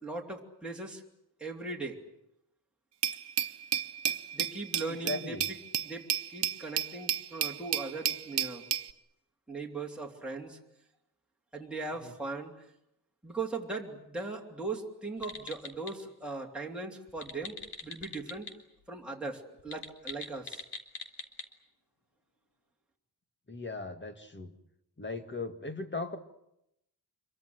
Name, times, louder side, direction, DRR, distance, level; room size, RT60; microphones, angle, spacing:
voice 1, 0.0-1.0 1.4-2.0 4.3-5.4 5.8-8.6 9.5-10.6 11.5-12.5 13.2-17.6 17.8-18.5 18.9-20.6, right 3 dB, ahead, -1 dB, 3.2 m, -39 dB
Glass, 3.0-8.9, right 10 dB, 90° right, 1.0 m, -32 dB
voice 2, 4.9-5.5 12.0-12.1 23.5-24.5 25.0-26.2, left 3 dB, 25° left, 8 dB, 2.1 m, -38 dB
sound 1, 15.2-15.9 17.1-18.5 18.8-18.9 19.6-21.5, left 3 dB, 85° left, 3.0 m, -42 dB
27.0 x 23.0 x 7.9 m, 0.80 s
wide cardioid pair, 140°, 40 cm